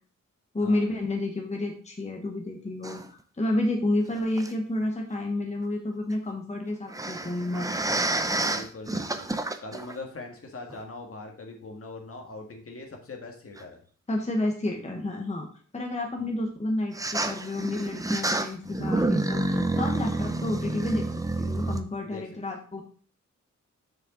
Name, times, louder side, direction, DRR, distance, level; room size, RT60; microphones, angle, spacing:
voice 1, 0.5-7.7 14.1-15.5 15.7-21.1 21.4-22.8, left 1 dB, 25° left, 1 dB, 1.2 m, -30 dB
sound 1, 2.8-3.1 4.4-4.5 6.9-10.0 10.7-10.8 13.6-13.7 16.9-21.8, right 2 dB, 10° right, 0.6 m, -29 dB
voice 2, 8.5-9.3 9.6-13.8 16.2-16.4 20.0-20.2 22.0-22.3, left 3 dB, 50° left, 3 dB, 1.7 m, -42 dB
7.2 x 6.6 x 3.8 m, 0.43 s
wide cardioid pair, 120°, 29 cm